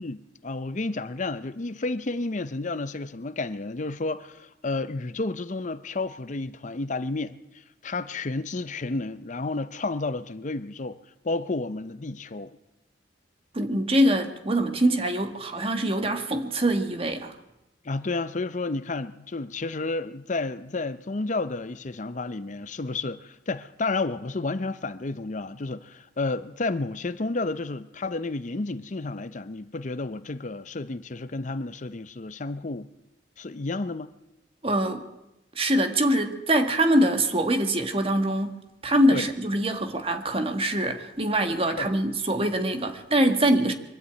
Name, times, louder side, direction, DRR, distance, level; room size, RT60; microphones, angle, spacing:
voice 1, 0.0-11.0 11.2-12.6 17.8-32.9 33.4-34.1 39.1-39.3 41.8-41.9, left 3 dB, 40° left, 0.6 m, -31 dB
voice 2, 13.5-17.3 34.6-35.0 35.5-43.7, right 1 dB, 30° right, 1.7 m, -24 dB
23.5 x 12.5 x 9.0 m
head